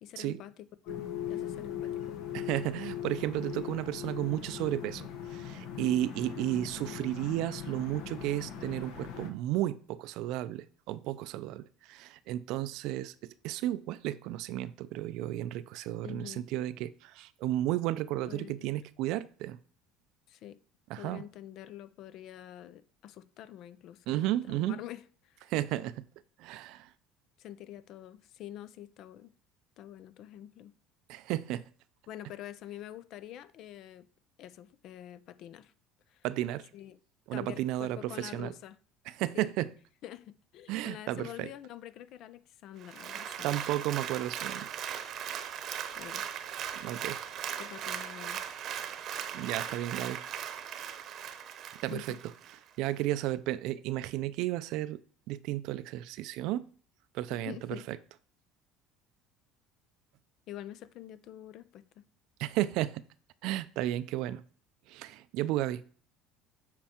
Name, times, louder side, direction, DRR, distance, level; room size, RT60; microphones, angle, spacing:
voice 1, 0.0-0.9 1.3-2.2 16.0-16.5 18.3-18.8 20.3-20.6 21.0-25.5 27.4-29.3 29.8-30.7 32.1-34.1 34.4-35.7 36.1-36.3 36.7-37.0 37.3-38.8 39.3-39.5 40.0-43.5 46.0-46.3 47.6-48.4 51.9-52.2 57.3-57.9 60.5-61.8, left 12 dB, 60° left, 0.5 m, -46 dB
sound 1, 0.9-9.3, left 9 dB, 80° left, 1.1 m, -40 dB
voice 2, 2.3-19.6 20.9-21.2 24.1-24.8 25.5-26.1 26.4-26.9 31.1-31.6 36.2-36.7 37.3-38.5 39.2-39.7 40.7-41.5 43.4-44.7 46.8-47.2 49.3-50.2 51.8-52.1 52.8-55.0 55.3-56.7 57.1-57.6 57.9-58.0 62.4-63.0 63.4-64.4 64.9-65.9, right 14 dB, 70° right, 0.4 m, -33 dB
Applause, 42.8-52.6 53.0-53.1, right 9 dB, 50° right, 0.9 m, -39 dB
7.5 x 4.5 x 4.4 m
supercardioid pair, 105°, 0 cm